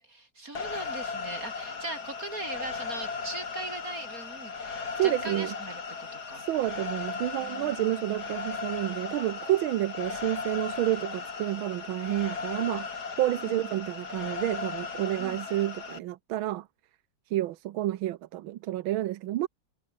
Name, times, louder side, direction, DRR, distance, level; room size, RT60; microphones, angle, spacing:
voice 1, 0.0-6.4 7.4-8.3 13.4-13.8 15.2-15.4, right 2 dB, 45° right, 5.4 m, -40 dB
sound 1, 0.6-16.0, left 5 dB, 55° left, 3.1 m, -37 dB
voice 2, 5.0-5.5 6.3-12.9 13.2-16.7 17.3-19.5, right 14 dB, 90° right, 1.6 m, -29 dB
omnidirectional pair, 2.1 m